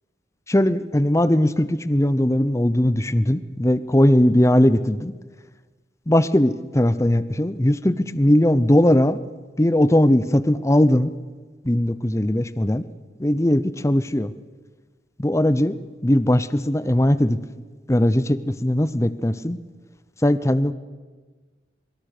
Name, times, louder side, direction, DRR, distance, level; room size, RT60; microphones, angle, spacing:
voice 1, 0.5-5.1 6.1-9.2 9.6-11.1 11.6-12.8 13.2-14.3 15.2-15.8 16.0-17.4 17.9-19.6 20.2-20.7, left 1 dB, 15° left, 14 dB, 0.7 m, -19 dB
24.0 x 22.5 x 6.7 m, 1.4 s
head